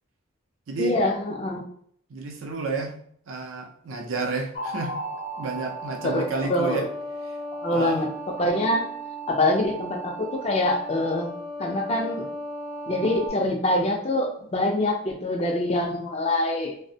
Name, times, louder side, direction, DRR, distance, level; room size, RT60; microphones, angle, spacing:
voice 1, 0.8-1.6 6.0-6.9 7.6-8.9 9.3-11.3 11.6-12.2 12.9-16.7, left 1 dB, 30° left, 2 dB, 0.3 m, -25 dB
voice 2, 2.1-3.0 3.3-5.0 5.4-6.9 7.7-8.0, right 3 dB, 90° right, 3 dB, 0.5 m, -30 dB
sound 1, 4.5-13.3, right 1 dB, 85° left, 0.5 m, -36 dB
2.5 x 2.0 x 2.6 m, 0.63 s
head